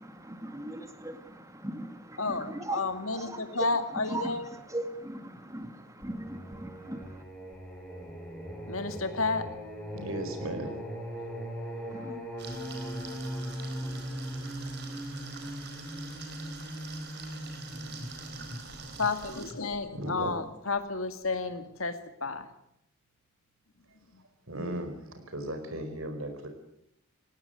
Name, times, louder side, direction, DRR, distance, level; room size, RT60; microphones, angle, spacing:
voice 1, 0.0-2.2 2.5-2.8 4.1-4.2 4.7-7.2 11.9-12.2, right 1 dB, 15° right, 2.3 m, -39 dB
voice 2, 2.2-4.5 7.5-7.6 8.7-9.5 11.3-11.4 18.9-22.5 24.1-24.3, left 3 dB, 70° left, 2.1 m, -32 dB
Singing, 6.0-20.7, equal, 5° left, 6.0 m, -40 dB
voice 3, 9.9-10.8 15.4-15.6 19.9-20.3 24.5-26.5, right 1 dB, 70° right, 4.7 m, -36 dB
sound 1, 12.4-19.5, right 5 dB, 50° right, 4.5 m, -46 dB
18.5 x 17.5 x 9.3 m
head